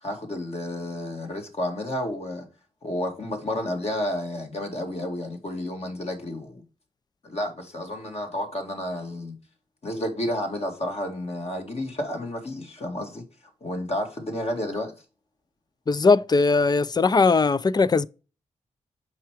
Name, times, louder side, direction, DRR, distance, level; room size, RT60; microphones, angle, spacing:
voice 1, 0.0-2.5 2.8-6.6 7.2-9.3 9.8-13.2 13.6-14.9, left 1 dB, 50° left, 2.2 m, -31 dB
voice 2, 15.9-18.1, left 4 dB, 30° left, 0.4 m, -19 dB
5.6 x 4.7 x 4.9 m
supercardioid pair, 45°, 14 cm